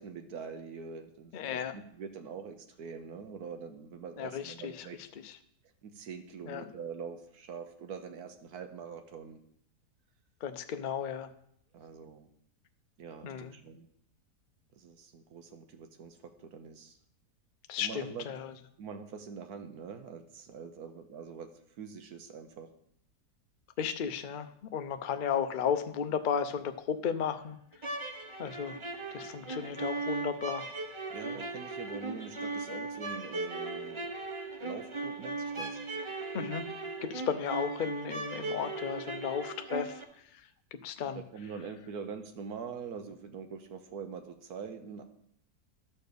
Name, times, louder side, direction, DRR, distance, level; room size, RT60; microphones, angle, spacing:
voice 1, 0.0-5.0 5.8-9.4 11.7-12.3 13.0-13.9 14.7-17.0 17.8-18.3 18.8-21.5 21.8-22.7 31.1-34.1 34.6-35.8 41.3-45.0, right 6 dB, 70° right, 7 dB, 1.3 m, -44 dB
voice 2, 1.3-1.8 4.2-4.9 5.2-5.3 6.5-6.7 10.4-11.3 13.2-13.5 17.7-18.5 23.8-27.6 28.4-28.8 29.1-30.7 36.3-36.7 37.0-40.0 40.7-41.2, left 7 dB, 80° left, 8 dB, 0.4 m, -34 dB
sound 1, 27.7-40.0, right 3 dB, 40° right, 0.4 m, -38 dB
11.5 x 4.4 x 6.7 m, 0.70 s
omnidirectional pair, 1.8 m